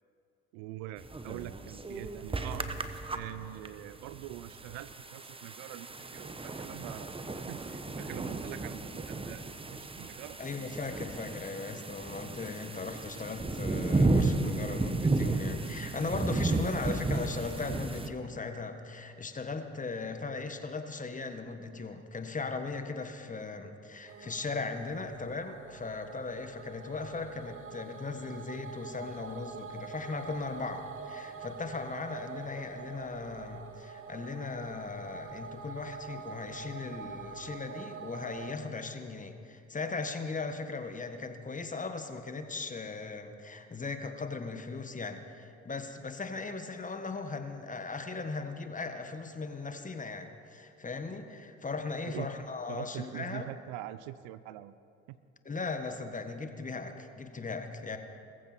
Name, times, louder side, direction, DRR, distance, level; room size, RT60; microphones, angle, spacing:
voice 1, 0.5-2.7 3.1-10.4 52.1-52.3 52.7-54.7 55.1-55.2, right 14 dB, 70° right, 16 dB, 0.6 m, -44 dB
sound 1, 1.0-18.1, right 3 dB, 15° right, 1.1 m, -33 dB
voice 2, 10.4-53.5 55.4-58.0, left 4 dB, 25° left, 7 dB, 1.6 m, -38 dB
sound 2, 24.1-38.5, right 6 dB, 40° right, 1.1 m, -45 dB
21.0 x 14.5 x 4.4 m, 2.5 s
hypercardioid pair, 60°, 33 cm